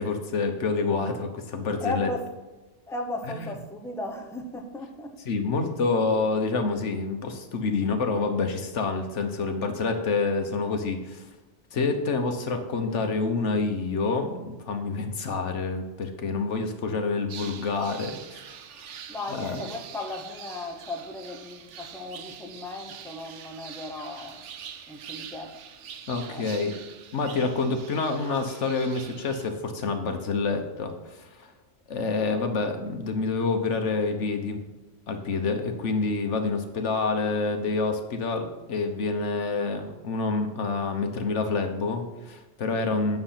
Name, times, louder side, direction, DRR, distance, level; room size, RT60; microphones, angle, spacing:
voice 1, 0.0-2.1 3.3-3.5 5.3-11.2 11.7-18.2 19.3-19.6 26.1-26.7 27.1-31.5 31.9-34.6 35.1-43.2, left 4 dB, 80° left, 1.4 m, -27 dB
voice 2, 1.8-2.3 2.9-5.1 19.1-24.4 24.9-25.6 26.3-26.5, left 2 dB, ahead, 0.9 m, -36 dB
sound 1, 17.3-29.5, right 8 dB, 80° right, 1.1 m, -44 dB
9.5 x 6.6 x 5.7 m
omnidirectional pair, 1.2 m